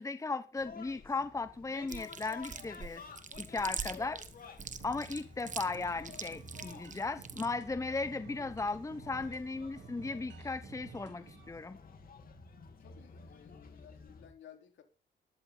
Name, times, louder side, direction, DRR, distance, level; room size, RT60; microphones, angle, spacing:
voice 1, 0.0-3.0 3.4-4.2 4.8-11.8, left 3 dB, 15° left, 12 dB, 0.9 m, -36 dB
sound 1, 0.6-14.3, left 4 dB, 45° left, 3.1 m, -52 dB
Chewing mastication, 1.9-7.5, right 6 dB, 40° right, 1.5 m, -42 dB
sound 2, 4.6-11.5, right 8 dB, 65° right, 3.4 m, -53 dB
voice 2, 12.8-14.8, left 9 dB, 70° left, 5 dB, 3.6 m, -57 dB
13.5 x 12.0 x 3.9 m, 0.33 s
cardioid pair, 90°, 20 cm